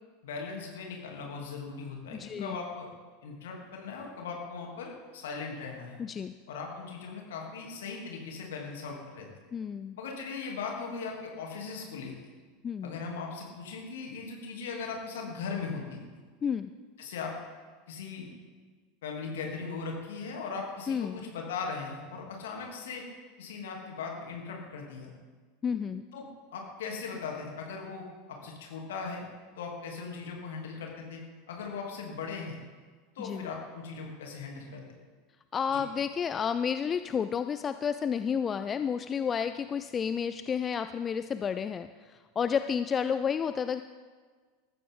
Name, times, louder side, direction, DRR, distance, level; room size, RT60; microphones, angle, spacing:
voice 1, 0.2-2.9 3.2-6.0 6.5-9.3 10.0-12.1 12.8-16.2 17.0-17.3 17.9-18.3 19.0-23.0 23.4-25.1 26.1-26.3 26.5-29.3 29.6-32.6 33.1-34.8 35.7-35.8, left 5 dB, 60° left, 0 dB, 3.1 m, -39 dB
voice 2, 2.1-2.6 6.0-6.3 9.5-10.0 12.6-12.9 16.4-16.7 20.9-21.3 25.6-26.0 33.2-33.5 35.5-43.8, left 7 dB, 25° left, 11 dB, 0.5 m, -31 dB
20.0 x 14.0 x 3.9 m, 1.5 s
figure-of-eight pair, 80°, 0 cm